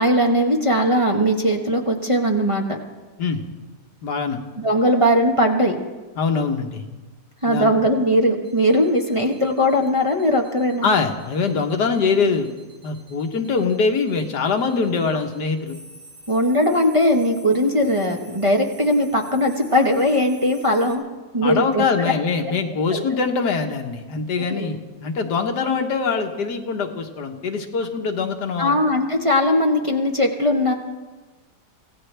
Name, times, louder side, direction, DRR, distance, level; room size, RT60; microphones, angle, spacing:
voice 1, 0.0-2.8 4.6-5.8 7.4-10.9 16.3-21.0 21.3-21.9 22.9-23.0 24.4-24.7 28.6-30.7, equal, 20° right, 0 dB, 1.1 m, -19 dB
voice 2, 4.0-4.4 6.2-6.9 7.5-7.7 10.8-12.5 12.8-15.8 21.4-28.7, left 4 dB, 75° left, 4 dB, 1.7 m, -23 dB
sound 1, 8.4-20.9, equal, 45° right, 4.5 m, -47 dB
25.0 x 17.0 x 3.4 m, 1.3 s
omnidirectional pair, 1.8 m